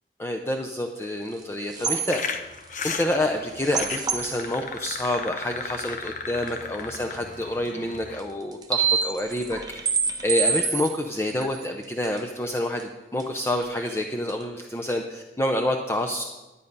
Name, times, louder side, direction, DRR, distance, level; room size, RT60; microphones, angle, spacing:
voice 1, 0.2-2.2 2.8-9.6 10.2-16.2, left 1 dB, 15° left, 2 dB, 0.6 m, -28 dB
sound 1, 1.4-1.5 1.7-2.2 3.6-4.5 6.5-6.6 7.1-7.2 8.2-8.3 8.5-12.2 12.5-12.6 12.8-12.9 13.2-13.3 13.6-14.0 14.3-14.4, right 6 dB, 20° right, 0.8 m, -27 dB
sound 2, 2.1-8.2, left 5 dB, 45° left, 0.8 m, -36 dB
11.0 x 9.8 x 5.3 m, 1.1 s
head